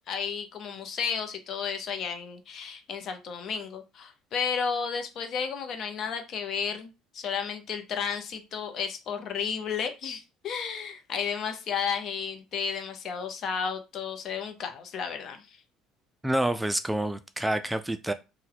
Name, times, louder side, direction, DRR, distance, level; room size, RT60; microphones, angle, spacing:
voice 1, 0.1-15.6, left 6 dB, 55° left, 0.6 m, -33 dB
voice 2, 16.2-18.1, right 1 dB, 10° right, 0.3 m, -28 dB
2.7 x 2.2 x 3.8 m
hypercardioid pair, 65°, 0 cm